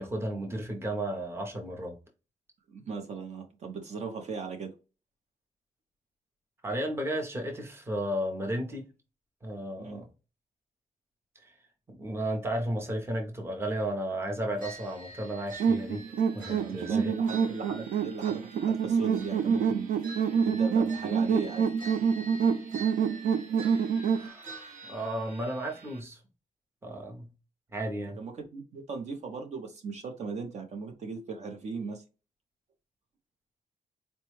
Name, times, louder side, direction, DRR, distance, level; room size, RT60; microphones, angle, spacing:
voice 1, 0.0-1.9 6.6-8.8 9.4-10.1 11.4-11.5 11.9-16.0 16.3-17.1 24.1-26.2 26.8-27.3 27.7-28.2, right 1 dB, 15° right, 0.7 m, -33 dB
voice 2, 2.7-4.7 9.8-10.0 16.5-19.9 20.4-21.7 28.2-32.0, right 4 dB, 50° right, 0.6 m, -38 dB
sound 1, 14.6-26.0, right 3 dB, 70° right, 1.0 m, -47 dB
sound 2, 15.6-24.3, right 6 dB, 90° right, 0.4 m, -27 dB
4.2 x 2.2 x 3.1 m
wide cardioid pair, 170°, 14 cm